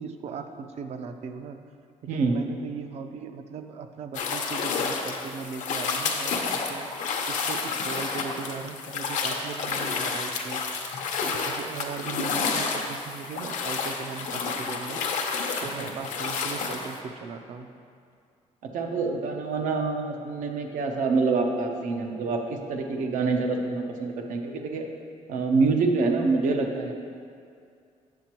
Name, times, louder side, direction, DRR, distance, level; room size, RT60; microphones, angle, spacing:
voice 1, 0.0-1.6 2.0-6.9 7.3-10.6 11.2-15.0 15.6-17.7, right 5 dB, 55° right, 7 dB, 0.4 m, -38 dB
voice 2, 2.1-2.4 15.8-15.9 18.6-24.9 25.3-26.9, right 4 dB, 85° right, 3 dB, 0.7 m, -26 dB
sound 1, 4.1-16.9, left 5 dB, 70° left, 0.7 m, -30 dB
7.6 x 7.5 x 2.9 m, 2.3 s
cardioid pair, 155°, 13 cm